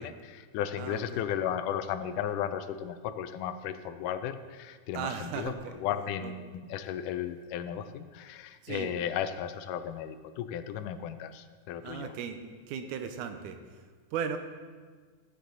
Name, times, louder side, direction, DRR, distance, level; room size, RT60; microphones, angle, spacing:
voice 1, 0.0-5.5 5.8-12.1, left 9 dB, 85° left, 10 dB, 2.1 m, -35 dB
voice 2, 0.8-1.2 4.9-5.8 6.2-6.3 8.6-8.9 11.8-12.4 12.7-13.6 14.1-14.4, right 7 dB, 85° right, 7 dB, 2.2 m, -36 dB
13.5 x 8.3 x 3.9 m, 1.5 s
omnidirectional pair, 3.6 m